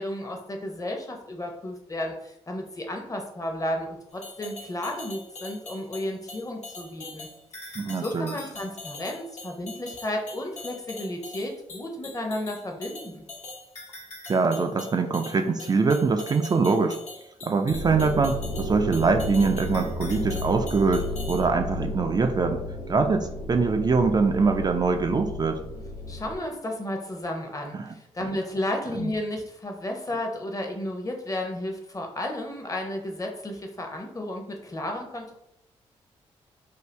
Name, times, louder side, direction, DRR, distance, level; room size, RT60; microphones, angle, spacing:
voice 1, 0.0-7.3 7.6-13.2 26.1-35.4, left 1 dB, 30° left, 2 dB, 0.8 m, -33 dB
sound 1, 4.1-21.4, left 2 dB, 65° left, 1.2 m, -42 dB
voice 2, 7.8-8.3 14.3-17.0 17.4-22.6 22.9-25.6 27.7-27.9 28.3-28.4 29.0-29.1, right 4 dB, 35° right, 5 dB, 0.3 m, -23 dB
sound 2, 17.7-26.4, left 1 dB, 45° left, 1.4 m, -33 dB
2.6 x 2.2 x 3.3 m, 0.80 s
supercardioid pair, 50°, 12 cm